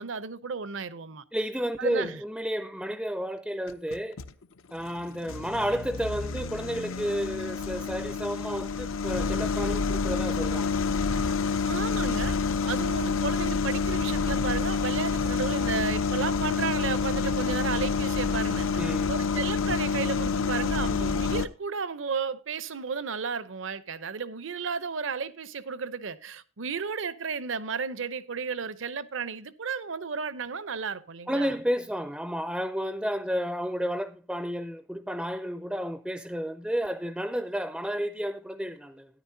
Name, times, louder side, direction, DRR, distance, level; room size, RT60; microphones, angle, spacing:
voice 1, 0.0-1.2 1.8-2.2 11.6-12.4 12.6-31.5, right 5 dB, 70° right, 0.7 m, -33 dB
voice 2, 1.3-4.2 4.7-10.8 18.8-19.1 31.3-39.1, equal, 5° right, 0.4 m, -31 dB
sound 1, 3.7-4.3 4.9-21.5, left 5 dB, 85° left, 0.7 m, -28 dB
13.0 x 10.5 x 2.7 m
head